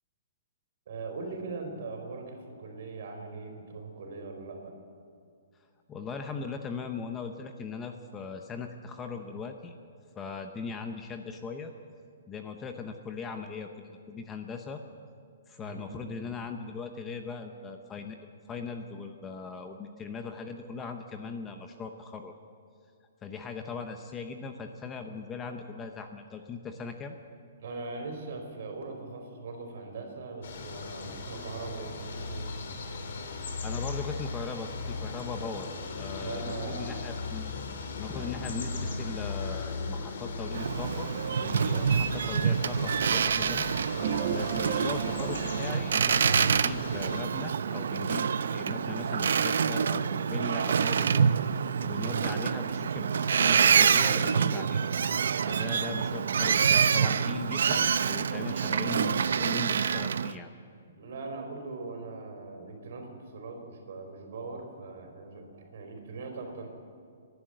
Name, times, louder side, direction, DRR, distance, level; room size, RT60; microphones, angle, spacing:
voice 1, 0.9-4.7 15.6-16.2 27.6-32.5 36.2-37.0 38.1-38.3 51.9-52.1 60.9-66.7, right 3 dB, 55° right, 4 dB, 4.2 m, -40 dB
voice 2, 5.9-9.8 10.2-11.7 12.3-14.8 15.5-22.3 23.2-27.2 33.6-35.7 36.0-37.5 38.0-43.7 44.3-51.3 51.8-54.9 55.5-60.5, left 5 dB, 10° left, 6 dB, 0.8 m, -39 dB
sound 1, 30.4-47.2, left 3 dB, 55° left, 2.9 m, -38 dB
Boat Water vehicle, 40.5-60.3, right 6 dB, 75° right, 0.6 m, -26 dB
sound 2, 44.0-46.8, right 6 dB, 30° right, 1.5 m, -35 dB
29.5 x 11.5 x 7.8 m, 2.3 s
hypercardioid pair, 170°, 0 cm